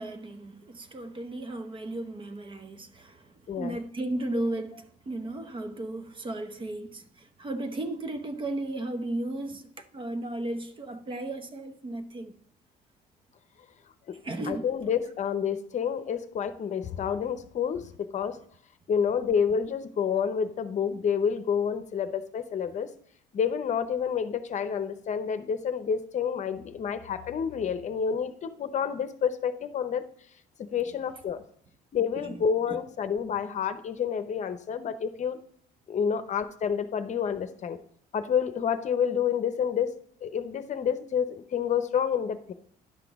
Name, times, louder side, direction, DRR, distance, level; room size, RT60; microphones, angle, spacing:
voice 1, 0.0-12.4 14.2-14.7 32.2-32.4 32.7-32.8, right 2 dB, 30° right, 0.9 m, -35 dB
voice 2, 3.5-3.8 14.1-14.2 14.5-18.4 18.9-22.9 23.3-30.0 30.6-31.4 31.9-35.4 35.9-37.8 38.1-39.9 40.2-42.5, left 7 dB, 45° left, 0.8 m, -29 dB
11.0 x 5.9 x 3.6 m
cardioid pair, 110°, 17 cm